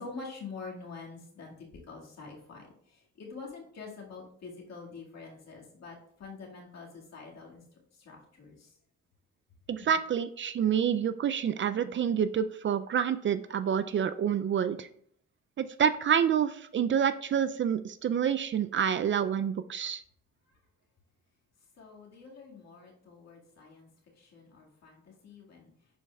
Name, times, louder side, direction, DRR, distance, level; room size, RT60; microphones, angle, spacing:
voice 1, 0.0-7.6 7.9-8.8 9.8-9.9 21.8-23.9 24.2-25.7, left 4 dB, 60° left, -1 dB, 1.9 m, -46 dB
voice 2, 9.7-14.9 15.6-20.0, right 8 dB, 40° right, 11 dB, 0.4 m, -28 dB
11.0 x 4.2 x 2.3 m, 0.63 s
cardioid pair, 90°, 30 cm